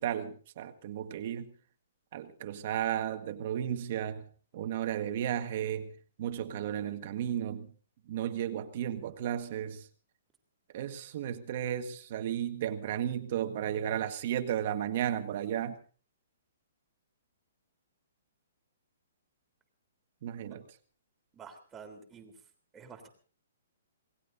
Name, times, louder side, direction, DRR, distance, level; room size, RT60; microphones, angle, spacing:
voice 1, 0.0-1.5 2.1-4.3 4.5-5.9 6.2-7.7 8.1-9.9 10.7-15.8 20.2-20.6, right 10 dB, 45° right, 1.6 m, -34 dB
voice 2, 21.3-22.3 22.7-23.1, right 5 dB, 15° right, 3.4 m, -49 dB
27.0 x 19.0 x 2.7 m
hypercardioid pair, 160°, 0 cm